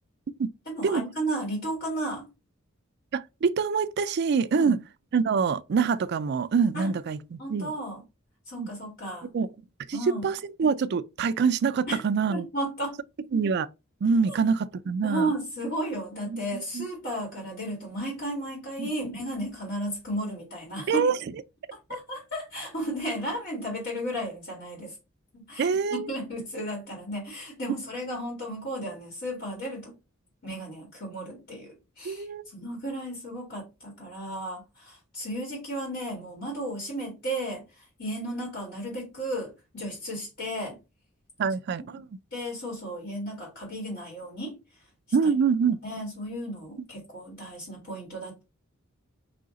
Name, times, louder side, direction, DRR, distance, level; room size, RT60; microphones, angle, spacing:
voice 1, 0.7-2.3 4.5-4.7 6.7-6.9 7.4-8.0 8.5-9.3 9.9-10.2 11.9-12.0 12.3-13.0 14.3-14.4 15.0-21.1 21.7-24.9 25.3-29.9 30.4-32.3 32.5-37.6 38.0-40.8 41.9-42.0 42.3-44.6 45.8-48.4, right 1 dB, 55° left, 2.0 m, -34 dB
voice 2, 3.1-4.8 5.1-7.7 8.6-8.7 9.3-9.5 9.9-10.0 10.2-12.5 13.3-13.7 14.0-15.3 16.3-16.9 18.8-18.9 20.9-21.1 25.6-26.1 32.0-32.4 41.4-42.1 45.1-45.8, right 5 dB, 55° right, 0.4 m, -25 dB
5.1 x 2.8 x 3.6 m
head